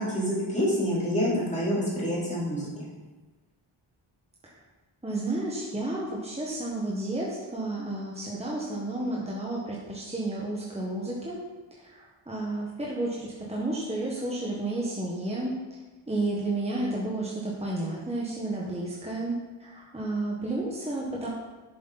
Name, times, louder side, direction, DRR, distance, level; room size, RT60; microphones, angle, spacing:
voice 1, 0.0-2.7, equal, 15° left, -7 dB, 3.7 m, -27 dB
voice 2, 5.0-11.4 11.9-15.6 16.1-21.3, right 2 dB, 10° right, -4 dB, 1.5 m, -31 dB
11.0 x 7.5 x 4.2 m, 1.2 s
wide cardioid pair, 140°, 49 cm